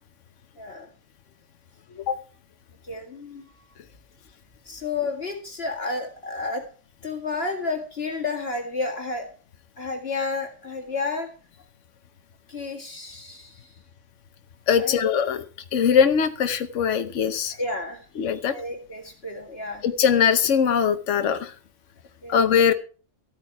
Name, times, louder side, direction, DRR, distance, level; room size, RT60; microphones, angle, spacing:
voice 1, 0.6-0.9 2.8-3.5 4.6-6.6 7.0-9.3 9.8-11.3 12.5-13.7 14.8-15.0 17.5-18.1 18.5-19.8 22.2-22.4, left 3 dB, 55° left, 2 dB, 2.4 m, -31 dB
voice 2, 14.7-15.4 15.7-17.5 18.2-18.5 19.8-21.5 22.3-22.7, left 7 dB, 75° left, 8 dB, 1.3 m, -21 dB
13.5 x 9.0 x 4.7 m, 0.39 s
omnidirectional pair, 1.3 m